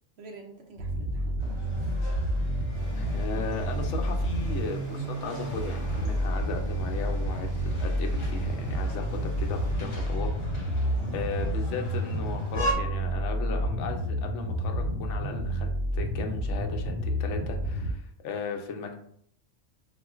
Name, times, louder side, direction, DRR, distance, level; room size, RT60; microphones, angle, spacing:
voice 1, 0.2-2.0 10.9-11.1, right 3 dB, 60° right, 2 dB, 0.8 m, -49 dB
sound 1, 0.8-17.9, right 1 dB, 80° right, 1.1 m, -30 dB
sound 2, 1.4-12.7, right 1 dB, 50° left, 0.3 m, -41 dB
sound 3, 2.7-9.7, right 2 dB, 25° right, 0.5 m, -46 dB
voice 2, 2.9-10.3 10.5-10.8 11.1-15.7 15.9-18.9, left 5 dB, 70° left, 3 dB, 0.9 m, -36 dB
3.7 x 2.4 x 2.3 m, 0.64 s
omnidirectional pair, 1.4 m